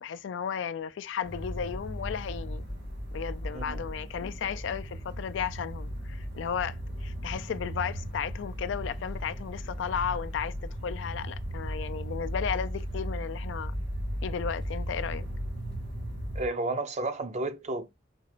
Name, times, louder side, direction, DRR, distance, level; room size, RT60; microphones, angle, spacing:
voice 1, 0.0-2.7 3.1-10.5 10.8-13.7 14.2-15.3, left 7 dB, 70° left, 0.3 m, -34 dB
sound 1, 1.2-16.5, equal, 70° right, 1.7 m, -36 dB
voice 2, 3.5-3.8 16.3-17.9, right 2 dB, 35° right, 0.5 m, -32 dB
4.1 x 2.4 x 2.9 m
head